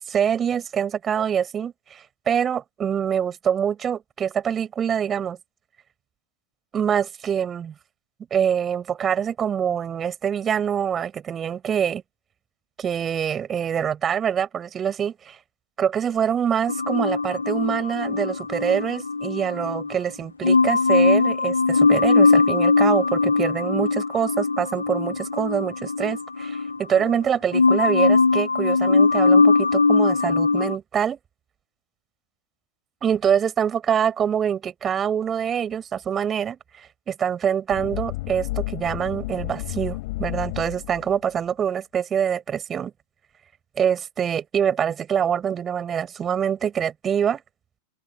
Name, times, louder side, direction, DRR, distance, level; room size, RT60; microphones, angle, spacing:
voice 1, 0.1-5.4 6.7-7.7 8.3-12.0 12.8-15.4 15.8-31.2 33.0-42.9 43.8-47.4, right 8 dB, 25° right, 6.2 m, -25 dB
sound 1, 16.7-19.9 20.4-27.2 27.5-30.8, left 4 dB, 80° left, 0.5 m, -20 dB
sound 2, 37.7-41.2, left 20 dB, 50° left, 6.9 m, -31 dB
figure-of-eight pair, 90°, 0 cm